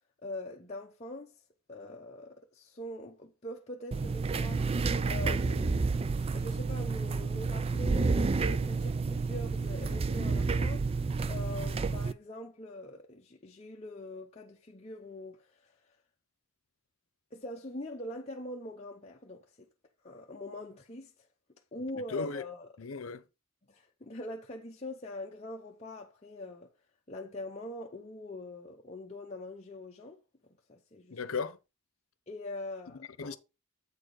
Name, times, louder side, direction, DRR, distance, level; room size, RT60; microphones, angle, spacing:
voice 1, 0.2-1.3 1.7-4.7 5.1-5.8 6.3-15.7 17.3-19.7 20.0-21.1 21.7-22.7 23.7-26.7 27.1-30.2 30.7-31.2 32.3-33.4, left 1 dB, 30° left, 0.8 m, -43 dB
sound 1, 3.9-12.1, right 4 dB, 30° right, 0.3 m, -30 dB
voice 2, 22.1-22.4 22.8-23.2 31.1-31.6 32.9-33.4, left 4 dB, 85° left, 0.8 m, -36 dB
8.2 x 4.6 x 4.8 m
head